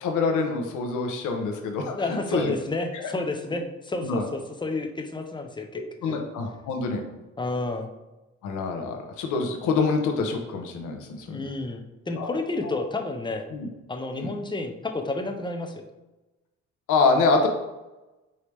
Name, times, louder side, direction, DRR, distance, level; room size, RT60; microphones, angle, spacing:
voice 1, 0.0-2.5 2.9-3.0 4.0-4.2 6.0-7.0 8.4-11.5 12.2-12.3 12.6-12.7 13.5-13.7 14.1-14.3 16.9-17.5, left 4 dB, 85° left, 3 dB, 0.9 m, -26 dB
voice 2, 1.9-6.2 7.4-7.9 11.3-13.5 13.9-15.9, left 2 dB, 15° left, 4 dB, 0.6 m, -31 dB
4.9 x 2.8 x 3.3 m, 1.0 s
cardioid pair, 90°, 30 cm